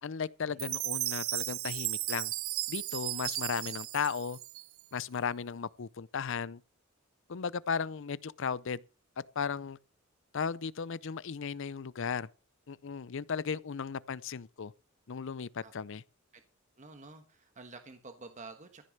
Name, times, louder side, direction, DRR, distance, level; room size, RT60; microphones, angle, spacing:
voice 1, 0.0-2.3 2.7-4.4 4.9-6.6 7.3-8.8 9.4-9.8 10.3-12.3 12.7-14.7 15.1-16.0, left 6 dB, 65° left, 0.5 m, -35 dB
Chime, 0.6-5.0, right 17 dB, 75° right, 0.6 m, -35 dB
voice 2, 16.8-18.8, right 3 dB, 35° right, 1.3 m, -49 dB
15.0 x 6.6 x 6.5 m
head